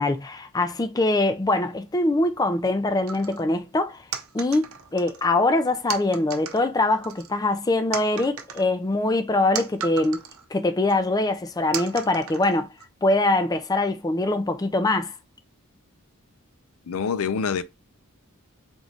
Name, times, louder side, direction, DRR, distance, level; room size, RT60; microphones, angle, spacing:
voice 1, 0.0-4.0 4.3-10.2 10.5-12.7 13.0-15.1, left 2 dB, 15° left, 0.4 m, -23 dB
sound 1, 3.1-3.4 4.1-5.3 5.9-6.6 7.0-7.6 7.9-10.4 10.9-11.0 11.7-12.8, right 8 dB, 80° right, 0.7 m, -35 dB
voice 2, 16.9-17.6, left 6 dB, 80° left, 0.5 m, -25 dB
3.6 x 3.1 x 3.9 m
head